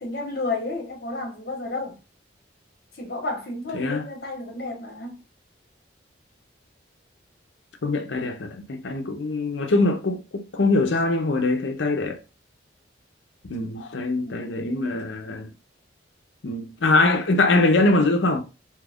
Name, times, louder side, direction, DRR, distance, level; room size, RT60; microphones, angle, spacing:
voice 1, 0.0-2.0 3.0-5.2 14.2-15.0, left 2 dB, 55° left, 1.0 m, -32 dB
voice 2, 7.8-12.2 13.4-15.5 16.4-18.4, left 2 dB, 80° left, 0.6 m, -23 dB
2.9 x 2.4 x 3.4 m
head